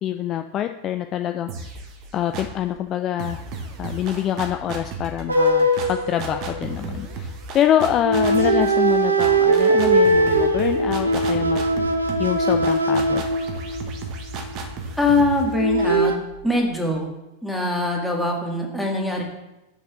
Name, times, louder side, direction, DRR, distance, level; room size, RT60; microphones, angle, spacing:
voice 1, 0.0-1.7 2.1-3.4 3.8-11.6 12.2-13.2, left 11 dB, 30° left, 7 dB, 0.4 m, -25 dB
sound 1, 1.5-2.7 3.2-16.9, right 3 dB, 40° right, 1.2 m, -34 dB
sound 2, 5.3-6.9 8.0-14.0 15.5-16.2, right 1 dB, 80° right, 0.7 m, -20 dB
voice 2, 15.0-16.1 16.4-17.1 17.4-19.2, left 2 dB, ahead, -1 dB, 1.8 m, -22 dB
6.5 x 5.3 x 5.8 m, 0.96 s
figure-of-eight pair, 90°, 0 cm